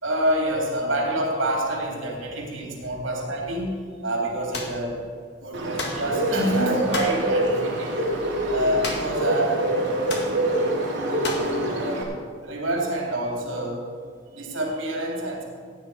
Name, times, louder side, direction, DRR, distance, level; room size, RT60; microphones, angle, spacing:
voice 1, 0.0-5.0 5.4-8.0 8.5-9.8 10.3-10.4 11.3-13.8 14.3-15.4, right 1 dB, 80° right, -1 dB, 3.4 m, -27 dB
sound 1, 4.5-4.8 5.8-6.0 6.9-7.2 8.8-9.2 9.5-9.6 10.1-10.3 11.2-11.5, left 3 dB, 55° left, 1.9 m, -31 dB
Bird, 5.5-12.0, right 1 dB, 60° right, 2.9 m, -25 dB
16.0 x 9.3 x 4.9 m, 2.1 s
head